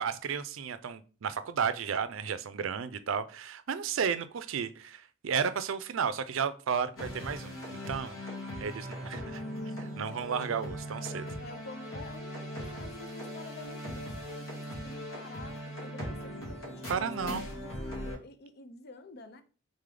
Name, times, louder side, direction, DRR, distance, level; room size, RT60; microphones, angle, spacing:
voice 1, 0.0-8.2 8.6-9.4 10.0-11.3 16.9-17.4, right 6 dB, 75° right, 0.5 m, -33 dB
sound 1, 7.0-18.2, equal, 80° left, 2.0 m, -40 dB
voice 2, 11.4-19.4, left 2 dB, 50° left, 0.5 m, -48 dB
3.9 x 3.3 x 3.7 m
head